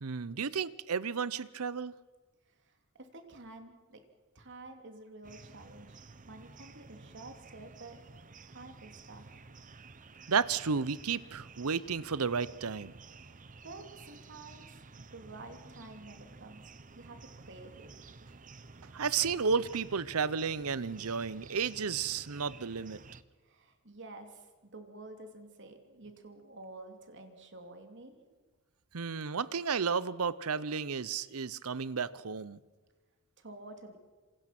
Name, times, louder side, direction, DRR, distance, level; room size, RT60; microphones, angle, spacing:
voice 1, 0.0-1.9 10.3-12.9 18.9-23.0 28.9-32.6, right 5 dB, 75° right, 18 dB, 0.8 m, -32 dB
voice 2, 2.5-4.0 4.3-6.0 6.3-8.0 8.4-9.4 13.2-14.7 14.9-16.6 17.0-17.9 23.4-28.2 33.4-34.0, right 2 dB, 55° right, 5 dB, 3.1 m, -50 dB
sound 1, 5.2-23.2, right 3 dB, 35° right, 0.9 m, -52 dB
27.0 x 26.0 x 6.0 m, 1.3 s
head